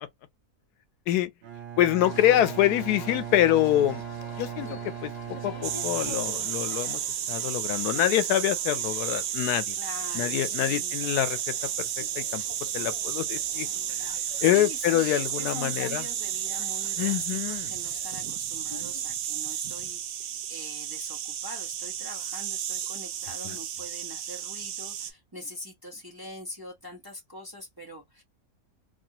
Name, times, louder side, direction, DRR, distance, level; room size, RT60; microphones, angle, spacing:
Bowed string instrument, 1.4-6.9, right 10 dB, 60° right, 0.7 m, -38 dB
voice 1, 1.8-4.0 4.4-5.1 5.4-7.0 7.3-9.7 10.1-11.4 12.2-12.4 12.7-13.7 14.4-16.1 17.0-17.7 23.4-23.6, left 13 dB, 85° left, 1.1 m, -25 dB
sound 1, 2.0-19.1, left 2 dB, 25° left, 0.5 m, -47 dB
sound 2, 5.6-25.1, right 10 dB, 75° right, 1.1 m, -32 dB
voice 2, 9.7-11.0 14.4-28.2, left 1 dB, 20° right, 0.8 m, -43 dB
2.8 x 2.3 x 2.8 m
omnidirectional pair, 1.6 m